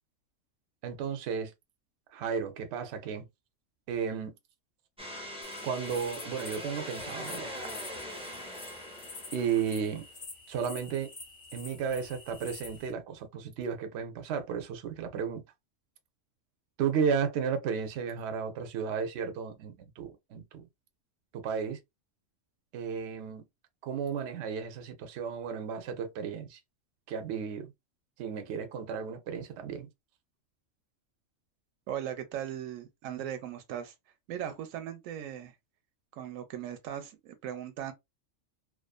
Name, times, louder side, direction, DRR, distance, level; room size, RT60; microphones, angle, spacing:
voice 1, 0.8-1.5 2.1-3.3 3.9-4.4 5.6-7.8 9.3-10.1 10.5-11.1 11.5-15.4 16.8-20.7 21.3-21.8 22.7-23.4 23.8-26.6 27.1-27.7 28.2-29.9, right 6 dB, 65° right, 0.7 m, -33 dB
sound 1, 5.0-10.2, left 1 dB, 10° right, 0.4 m, -42 dB
sound 2, 5.4-12.9, left 3 dB, 30° left, 0.6 m, -47 dB
voice 2, 31.9-33.9 34.3-35.5 36.1-37.9, right 10 dB, 90° right, 1.0 m, -38 dB
2.4 x 2.3 x 2.3 m
omnidirectional pair, 1.3 m